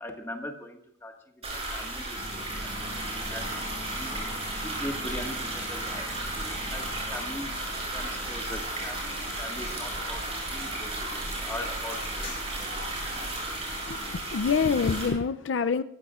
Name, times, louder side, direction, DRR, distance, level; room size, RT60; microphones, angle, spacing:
voice 1, 0.0-4.1 4.6-6.1 6.3-7.5 7.9-12.8, left 1 dB, 15° left, 1.6 m, -41 dB
sound 1, 1.4-15.1, right 1 dB, 30° right, 7.6 m, -34 dB
sound 2, 2.1-14.3, left 1 dB, 45° left, 3.8 m, -45 dB
voice 2, 13.9-15.8, left 5 dB, 75° left, 0.5 m, -26 dB
24.5 x 15.5 x 2.4 m
head